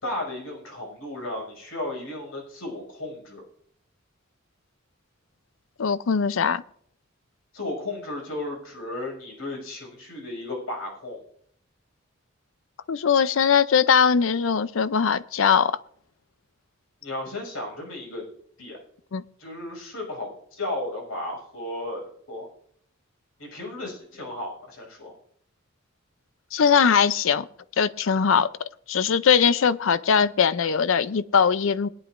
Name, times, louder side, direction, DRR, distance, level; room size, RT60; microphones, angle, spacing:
voice 1, 0.0-3.4 7.5-11.2 17.0-18.2 18.6-18.8 19.4-22.5 23.4-25.1, left 1 dB, 85° left, 5.8 m, -34 dB
voice 2, 5.8-6.6 12.9-15.8 19.1-19.2 26.5-27.5 27.8-28.5 28.9-31.9, left 6 dB, 70° left, 0.5 m, -21 dB
21.5 x 9.8 x 2.5 m
head